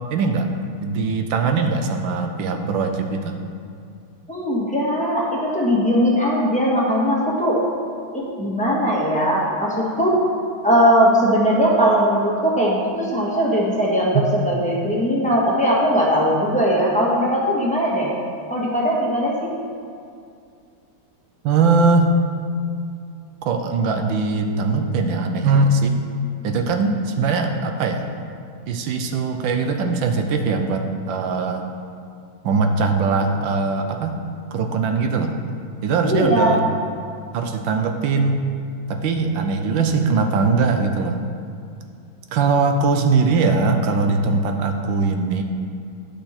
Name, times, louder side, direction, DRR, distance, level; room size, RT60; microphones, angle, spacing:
voice 1, 0.1-0.5 0.7-3.4 21.4-22.1 23.4-26.0 26.4-28.1 28.7-31.7 32.4-34.2 34.5-35.3 35.8-36.6 37.3-38.4 38.9-41.2 42.3-45.4, right 4 dB, 75° right, 5 dB, 1.4 m, -21 dB
voice 2, 4.3-7.6 8.1-10.1 10.6-18.1 18.5-19.6 36.0-36.6, equal, 5° left, -6 dB, 1.4 m, -19 dB
10.5 x 5.5 x 4.3 m, 2.4 s
omnidirectional pair, 2.2 m